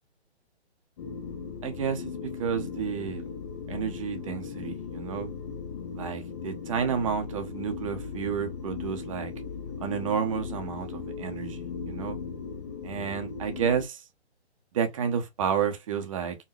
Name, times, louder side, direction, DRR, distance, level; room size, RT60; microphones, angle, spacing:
sound 1, 1.0-13.8, left 5 dB, 25° left, 0.7 m, -38 dB
voice 1, 1.6-3.2 3.7-5.3 5.9-9.3 9.8-12.2 12.8-14.0 14.7-16.4, right 7 dB, 30° right, 1.0 m, -31 dB
4.9 x 2.7 x 3.2 m
figure-of-eight pair, 140°, 34 cm